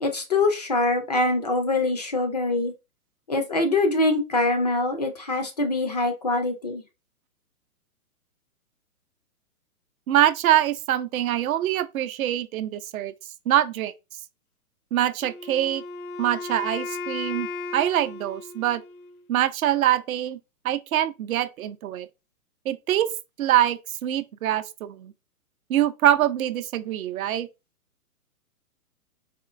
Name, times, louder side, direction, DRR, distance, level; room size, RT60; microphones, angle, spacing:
voice 1, 0.0-2.7 3.3-6.8, left 2 dB, 30° left, 0.3 m, -24 dB
voice 2, 10.1-13.1 13.5-13.9 14.9-15.8 16.2-17.5 17.7-18.8 19.3-20.4 20.6-22.1 22.7-23.1 23.4-25.1 25.7-27.5, right 12 dB, 65° right, 0.5 m, -24 dB
Wind instrument woodwind instrument, 15.2-19.3, left 3 dB, 70° left, 0.7 m, -36 dB
4.3 x 2.3 x 2.4 m
hypercardioid pair, 130°, 45 cm